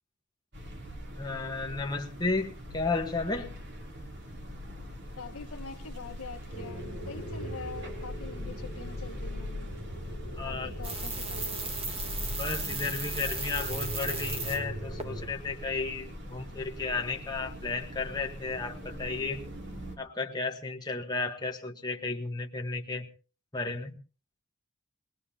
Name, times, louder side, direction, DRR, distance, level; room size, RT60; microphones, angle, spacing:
sound 1, 0.5-20.0, equal, 50° right, 3.1 m, -43 dB
voice 1, 1.1-3.5 10.4-10.7 12.4-19.4 20.0-23.1 23.5-24.0, left 3 dB, 20° left, 1.3 m, -33 dB
voice 2, 5.1-9.7 10.4-12.1, left 4 dB, 80° left, 1.4 m, -45 dB
sound 2, 6.5-15.3, left 1 dB, 85° right, 7.7 m, -39 dB
sound 3, 10.8-14.6 15.0-15.1, right 3 dB, 25° right, 1.7 m, -35 dB
22.0 x 19.5 x 2.8 m
head